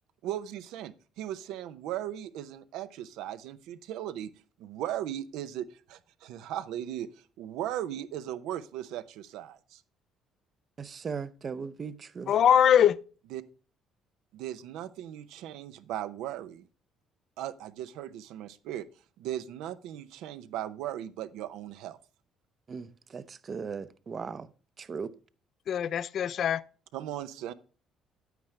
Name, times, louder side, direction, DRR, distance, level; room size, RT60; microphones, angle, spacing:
voice 1, 0.2-4.3 4.6-7.1 7.4-9.8 13.3-13.4 14.3-16.6 17.4-18.9 19.2-22.0 26.9-27.5, right 12 dB, 85° right, 0.7 m, -37 dB
voice 2, 10.8-12.3 22.7-24.5 24.8-25.1, right 5 dB, 35° right, 0.6 m, -38 dB
voice 3, 12.3-13.0 25.7-26.6, left 9 dB, 55° left, 0.4 m, -22 dB
9.3 x 8.9 x 3.2 m
cardioid pair, 125°, 0 cm